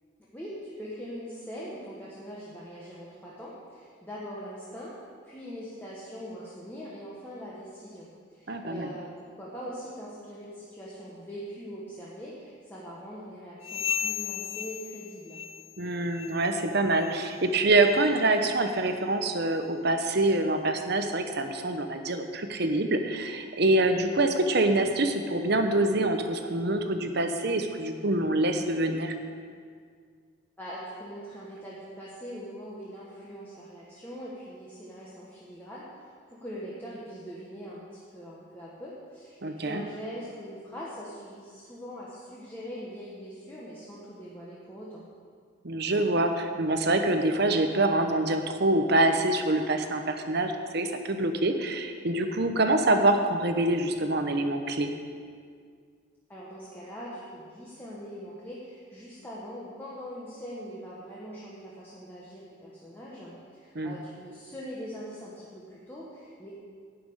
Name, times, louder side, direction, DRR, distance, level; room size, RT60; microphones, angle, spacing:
voice 1, 0.3-4.9 5.2-15.4 30.6-45.0 56.3-66.5, equal, 10° left, -7 dB, 1.4 m, -42 dB
voice 2, 8.5-8.9 15.8-29.1 39.4-39.8 45.6-54.9 63.7-64.0, right 2 dB, 50° right, 6 dB, 0.9 m, -25 dB
sound 1, 13.6-15.8 16.1-16.5 16.9-17.2 17.8-17.9 18.6-18.7 19.5-19.6, left 8 dB, 25° left, 0.4 m, -35 dB
11.5 x 6.0 x 8.6 m, 2.1 s
head